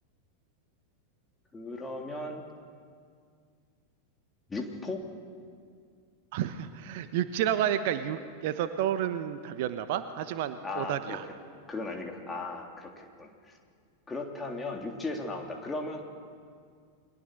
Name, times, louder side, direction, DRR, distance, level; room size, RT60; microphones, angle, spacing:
voice 1, 1.5-2.4 4.5-5.0 10.6-11.2 11.7-13.5 14.1-16.0, left 2 dB, 15° left, 2 dB, 3.3 m, -36 dB
voice 2, 6.3-11.3, right 10 dB, 50° right, 11 dB, 1.0 m, -30 dB
29.0 x 22.5 x 6.6 m, 2.2 s
figure-of-eight pair, 90°, 0 cm